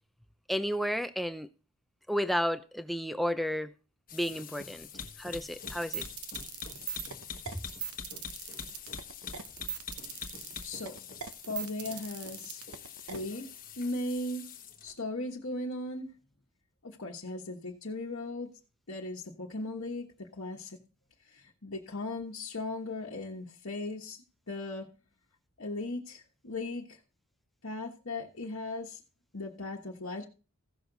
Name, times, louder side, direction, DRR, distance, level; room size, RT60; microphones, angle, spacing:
voice 1, 0.5-1.5 2.1-3.7 4.1-4.9 5.2-6.0 7.5-7.6, equal, ahead, 0.6 m, -32 dB
sound 1, 4.1-14.9, left 6 dB, 40° left, 1.3 m, -44 dB
sound 2, 5.7-13.2, right 9 dB, 80° right, 0.9 m, -40 dB
voice 2, 10.6-10.9 11.5-12.6 13.1-13.5 13.8-14.4 14.8-16.1 16.8-18.5 18.9-20.8 21.2-24.9 25.6-27.0 27.6-29.0 29.3-30.2, left 2 dB, 65° left, 1.4 m, -37 dB
16.0 x 6.4 x 4.0 m
head